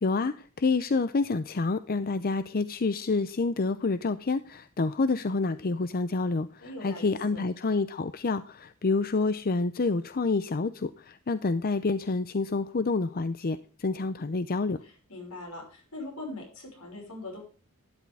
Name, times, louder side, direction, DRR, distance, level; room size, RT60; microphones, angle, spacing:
voice 1, 0.0-14.8, left 3 dB, 45° left, 13 dB, 0.6 m, -28 dB
voice 2, 6.6-7.4 14.8-17.4, left 2 dB, 80° left, 2 dB, 5.8 m, -41 dB
12.5 x 11.0 x 3.5 m, 0.39 s
head